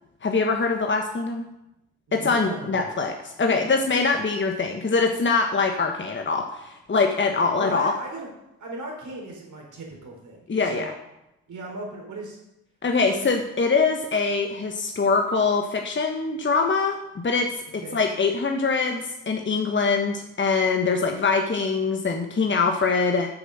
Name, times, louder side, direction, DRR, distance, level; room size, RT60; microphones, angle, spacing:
voice 1, 0.2-1.4 2.1-7.9 10.5-10.9 12.8-17.0 17.2-17.5 17.7-23.3, left 4 dB, 30° left, 3 dB, 1.3 m, -23 dB
voice 2, 2.1-2.9 7.6-8.3 8.6-10.9 11.5-12.4 13.0-13.3 17.8-18.0, right 2 dB, 55° right, -1 dB, 4.2 m, -37 dB
9.1 x 6.8 x 6.5 m, 0.88 s
hypercardioid pair, 40°, 35 cm